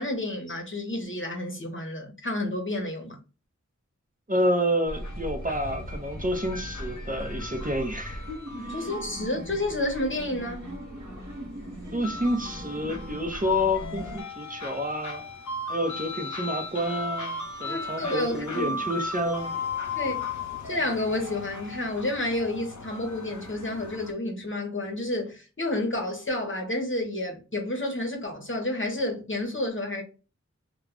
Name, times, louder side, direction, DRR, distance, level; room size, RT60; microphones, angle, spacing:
voice 1, 0.0-3.2 8.5-10.7 17.7-18.7 19.9-20.2 20.6-30.0, left 1 dB, 40° left, 0.9 m, -30 dB
voice 2, 4.3-8.2 8.7-8.9 11.9-15.2 15.6-19.5, equal, 30° right, 0.7 m, -29 dB
sound 1, 4.8-24.1, left 3 dB, 75° left, 0.6 m, -37 dB
sound 2, 4.9-14.2, equal, 70° right, 1.2 m, -39 dB
2.4 x 2.2 x 3.6 m
wide cardioid pair, 45°, 30 cm